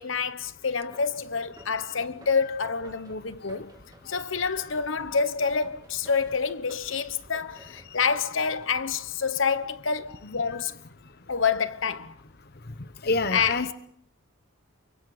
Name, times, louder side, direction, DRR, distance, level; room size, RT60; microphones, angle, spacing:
voice 1, 0.0-3.7 4.1-10.7 11.3-12.2 13.3-13.7, left 5 dB, 70° left, 1.1 m, -27 dB
sound 1, 0.9-10.0, right 1 dB, 20° right, 2.7 m, -54 dB
voice 2, 13.0-13.7, left 3 dB, 50° left, 0.9 m, -27 dB
29.5 x 24.5 x 5.0 m
head